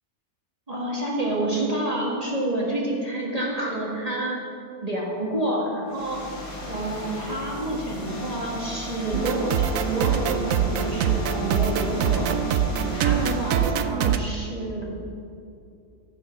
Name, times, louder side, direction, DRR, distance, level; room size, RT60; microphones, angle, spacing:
voice 1, 0.7-4.4 4.8-6.3 6.7-12.3 12.8-14.9, right 1 dB, 25° right, -4 dB, 1.7 m, -28 dB
sound 1, 5.9-13.8, left 1 dB, 70° left, 2.6 m, -36 dB
sound 2, 9.1-14.2, right 8 dB, 70° right, 1.0 m, -24 dB
15.0 x 5.7 x 5.9 m, 2.5 s
omnidirectional pair, 1.6 m